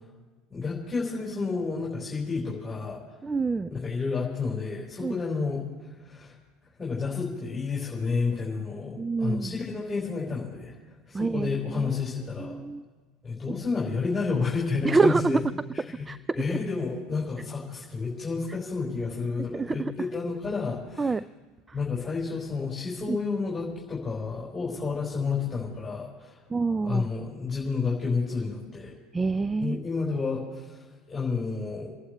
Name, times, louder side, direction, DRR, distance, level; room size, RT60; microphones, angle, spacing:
voice 1, 0.5-3.0 3.7-5.6 5.9-6.3 6.8-12.6 13.2-15.4 15.7-16.1 16.3-21.2 21.7-26.4 26.8-28.9 29.6-31.9, left 4 dB, 15° left, -5 dB, 4.6 m, -30 dB
voice 2, 3.2-3.7 5.0-5.1 9.0-9.5 11.1-11.9 12.4-12.8 13.5-13.6 14.8-15.3 16.1-16.2 16.5-16.6 19.5-19.9 21.0-21.2 23.1-23.2 26.5-27.1 29.1-29.8, right 4 dB, 20° right, 17 dB, 0.3 m, -26 dB
29.5 x 11.5 x 3.2 m, 1.4 s
hypercardioid pair, 80°, 0 cm